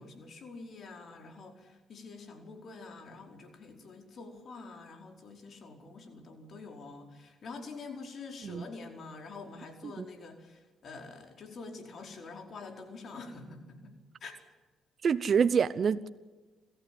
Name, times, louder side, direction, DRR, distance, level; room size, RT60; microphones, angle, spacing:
voice 1, 0.0-13.9 14.2-14.4, left 3 dB, 55° left, 4.9 m, -46 dB
voice 2, 15.0-16.1, right 6 dB, 50° right, 0.8 m, -27 dB
27.5 x 14.0 x 9.4 m
cardioid pair, 90°, 0 cm